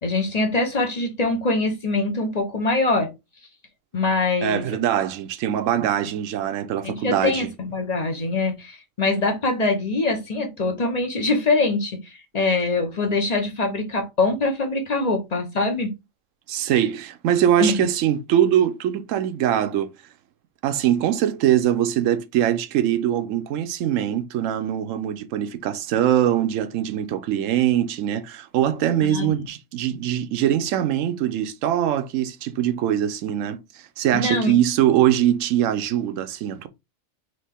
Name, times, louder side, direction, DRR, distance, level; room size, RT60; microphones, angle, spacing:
voice 1, 0.0-3.1 3.9-4.6 6.8-15.9 17.6-17.8 29.0-29.3 34.1-34.5, left 3 dB, 30° left, 1.0 m, -23 dB
voice 2, 4.4-7.5 16.5-19.9 20.6-33.6 34.0-36.7, right 11 dB, 70° right, 1.0 m, -22 dB
4.2 x 3.3 x 3.5 m
omnidirectional pair, 1.4 m